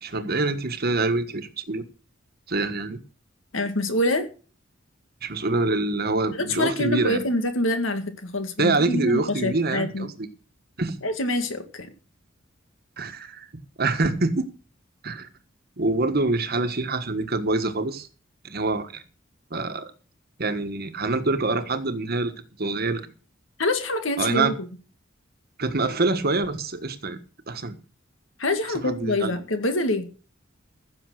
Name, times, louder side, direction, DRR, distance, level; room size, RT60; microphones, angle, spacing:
voice 1, 0.0-1.8 2.5-3.0 5.2-7.2 8.6-10.1 10.8-11.0 13.0-14.5 15.0-15.3 15.8-18.1 18.4-19.0 19.5-19.9 20.4-22.3 22.6-23.0 24.2-24.5 25.6-27.2 27.5-27.8 28.8-29.3, right 3 dB, 50° right, 1.4 m, -25 dB
voice 2, 3.5-4.3 6.3-10.1 11.0-11.9 23.6-24.7 28.4-30.0, left 1 dB, 80° left, 2.1 m, -25 dB
15.5 x 7.1 x 6.4 m
head